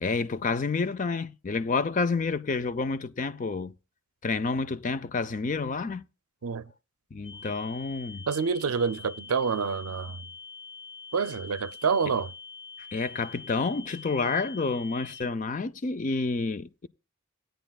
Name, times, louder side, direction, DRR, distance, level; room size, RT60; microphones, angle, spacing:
voice 1, 0.0-3.7 4.2-6.0 7.1-8.2 12.8-16.9, left 4 dB, 35° left, 0.4 m, -29 dB
sound 1, 7.2-15.2, left 4 dB, 65° left, 3.8 m, -45 dB
voice 2, 8.3-10.2 11.1-12.3, right 5 dB, 90° right, 0.5 m, -27 dB
16.0 x 9.1 x 2.3 m
head